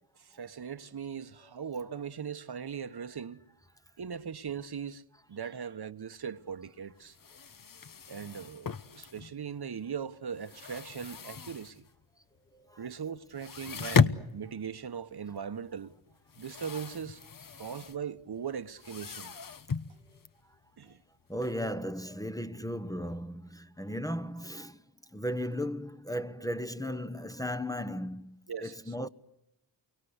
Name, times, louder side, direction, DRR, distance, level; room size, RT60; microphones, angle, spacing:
voice 1, 0.3-3.4 4.0-5.0 5.3-7.1 8.1-11.8 12.8-15.9 16.4-17.2 17.6-19.3 20.8-21.0 28.5-28.9, right 7 dB, 50° right, 1.3 m, -39 dB
sound 1, 6.3-6.4 6.6-6.7 7.0-9.6 9.9-12.0 12.4-12.5 12.8-12.9 13.3-21.5, left 6 dB, 45° left, 1.1 m, -35 dB
voice 2, 21.3-24.8 25.1-29.1, equal, 5° left, 1.1 m, -36 dB
29.0 x 24.0 x 8.1 m
cardioid pair, 55°, 48 cm